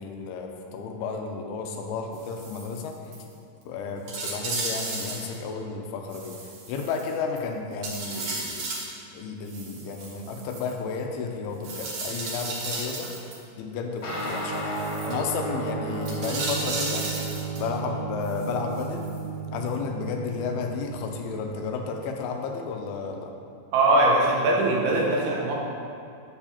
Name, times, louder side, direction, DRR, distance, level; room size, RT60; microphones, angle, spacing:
voice 1, 0.0-3.0 3.7-6.4 6.7-8.7 9.1-13.1 13.6-14.7 15.0-17.1 17.5-19.1 19.5-23.3, left 5 dB, 85° left, 3 dB, 2.6 m, -32 dB
sound 1, 2.1-2.8 3.1-3.2 3.6-3.7 4.1-5.4 6.1-7.4 7.8-8.9 9.5-10.7 11.6-13.4 14.1-15.1 16.0-17.7 18.2-19.2 19.7-19.8, right 3 dB, 65° right, 1.9 m, -34 dB
sound 2, 14.0-21.8, right 3 dB, 65° left, 1.2 m, -33 dB
voice 2, 23.7-25.6, right 2 dB, 90° right, -3 dB, 2.9 m, -21 dB
7.5 x 6.9 x 2.9 m, 2.4 s
omnidirectional pair, 4.5 m